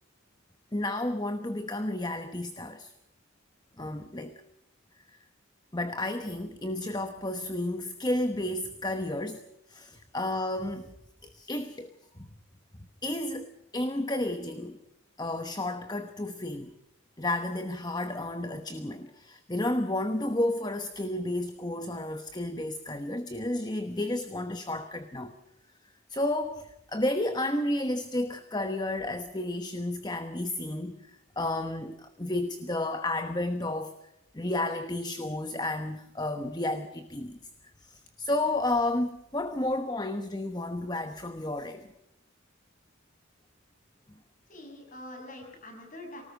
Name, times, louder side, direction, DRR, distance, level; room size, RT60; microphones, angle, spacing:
voice 1, 0.7-2.9 3.8-4.3 5.1-5.2 5.7-10.9 11.2-11.9 12.2-12.3 13.0-14.8 15.2-16.7 17.2-25.3 26.1-33.9 34.3-37.4 37.8-41.8, left 1 dB, 20° left, 9 dB, 1.0 m, -32 dB
voice 2, 44.5-46.2, left 1 dB, 40° left, 3 dB, 6.8 m, -44 dB
24.5 x 19.0 x 6.4 m, 0.84 s
head